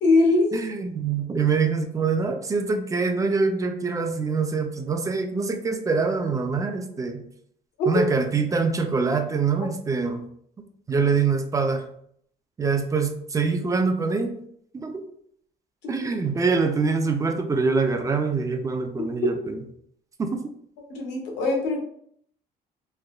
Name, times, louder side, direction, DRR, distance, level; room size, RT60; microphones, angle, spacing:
voice 1, 0.0-0.7 7.8-7.9 15.8-15.9 20.9-21.8, left 2 dB, 90° left, 0 dB, 0.9 m, -21 dB
voice 2, 0.5-7.2 7.9-10.2 10.9-11.9 12.6-14.3 14.7-15.0 15.9-19.6 20.2-20.5, right 4 dB, 20° right, 6 dB, 0.3 m, -24 dB
3.2 x 2.1 x 2.3 m, 0.67 s
cardioid pair, 110°, 17 cm